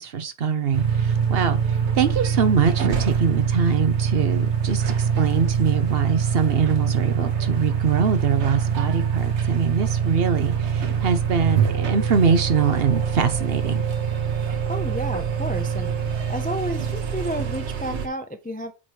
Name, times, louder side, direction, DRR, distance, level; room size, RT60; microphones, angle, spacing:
voice 1, 0.0-1.6 1.9-13.8, right 6 dB, 60° right, 1.0 m, -23 dB
sound 1, 0.7-18.1, right 7 dB, 80° right, 1.3 m, -24 dB
voice 2, 14.7-15.9 16.3-18.7, equal, 15° left, 0.3 m, -31 dB
8.5 x 3.0 x 4.5 m
omnidirectional pair, 1.1 m